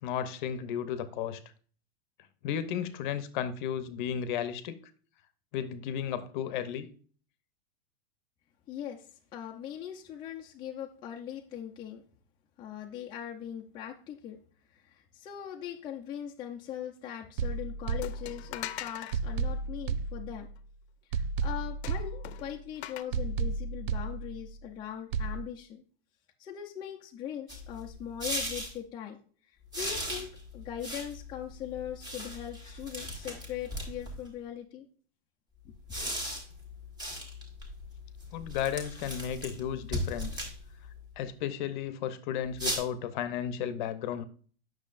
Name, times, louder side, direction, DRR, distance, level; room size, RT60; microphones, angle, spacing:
voice 1, 0.0-1.4 2.4-4.8 5.5-6.9 38.3-40.4 41.2-44.2, left 9 dB, 50° left, 0.8 m, -34 dB
voice 2, 8.7-12.0 12.6-14.4 14.7-20.5 21.1-25.8 26.4-29.2 29.7-30.3 30.5-34.9 35.6-35.7, left 10 dB, 15° left, 0.5 m, -40 dB
sound 1, 17.4-18.7 19.1-20.7 21.1-22.7 23.1-24.7 25.1-25.4, right 4 dB, 60° right, 0.5 m, -33 dB
sound 2, 18.0-19.2 21.8-23.0, left 12 dB, 80° left, 0.7 m, -41 dB
sound 3, 27.5-28.7 29.7-34.3 35.7-41.1 42.5-42.8, equal, 15° right, 1.4 m, -38 dB
8.5 x 6.3 x 2.5 m
supercardioid pair, 160°, 32 cm